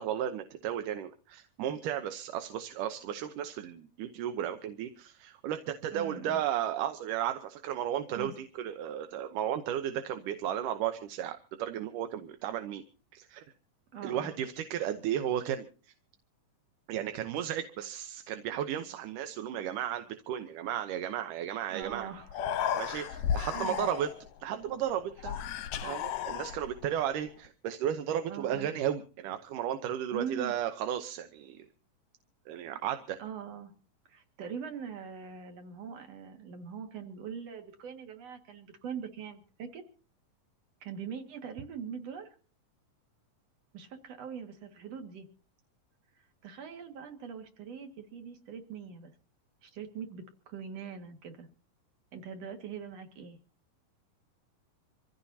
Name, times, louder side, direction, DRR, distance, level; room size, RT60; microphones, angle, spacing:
voice 1, 0.0-12.8 13.1-13.4 14.0-15.7 16.9-22.1 22.8-24.1 24.4-25.1 25.9-31.7 32.5-33.2, right 10 dB, 75° right, 8 dB, 2.3 m, -34 dB
voice 2, 5.9-6.4 8.2-8.3 13.9-14.4 21.7-22.3 22.7-23.0 23.5-23.9 25.2-25.5 25.8-26.1 26.5-26.6 28.3-28.7 30.1-30.5 33.2-33.7 34.1-39.8 40.8-42.4 43.7-45.3 46.4-49.1 49.6-51.5 52.1-53.4, right 7 dB, 50° right, 6 dB, 2.8 m, -42 dB
Human voice, 21.8-21.9 22.2-24.3 25.2-26.9, left 9 dB, 70° left, 1.8 m, -34 dB
26.0 x 16.0 x 2.8 m, 0.38 s
omnidirectional pair, 4.0 m